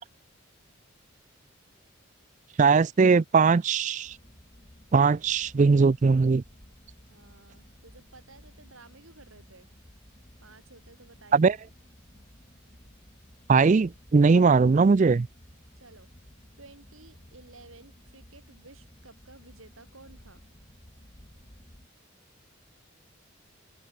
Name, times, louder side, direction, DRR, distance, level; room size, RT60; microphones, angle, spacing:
voice 1, 2.6-4.2 4.9-6.4 11.3-11.5 13.5-15.3, right 4 dB, 35° right, 0.3 m, -20 dB
sound 1, 4.0-21.9, equal, 30° left, 2.4 m, -55 dB
voice 2, 7.1-9.7 10.4-11.5 15.8-16.1 16.6-20.4, right 3 dB, 75° right, 5.0 m, -53 dB
open air
head